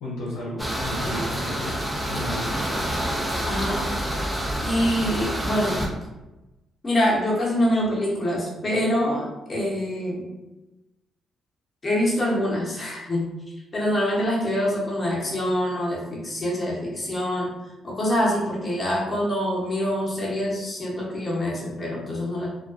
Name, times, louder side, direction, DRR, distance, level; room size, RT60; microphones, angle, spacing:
voice 1, 0.0-2.6, left 1 dB, 85° left, -6 dB, 0.6 m, -33 dB
sound 1, 0.6-5.9, equal, 5° right, 0.7 m, -27 dB
voice 2, 3.4-4.0 4.6-5.8 6.8-10.3 11.8-13.3 13.7-17.5 17.8-22.5, equal, 35° left, -4 dB, 0.9 m, -25 dB
2.3 x 2.2 x 2.5 m, 1.0 s
hypercardioid pair, 50°, 0 cm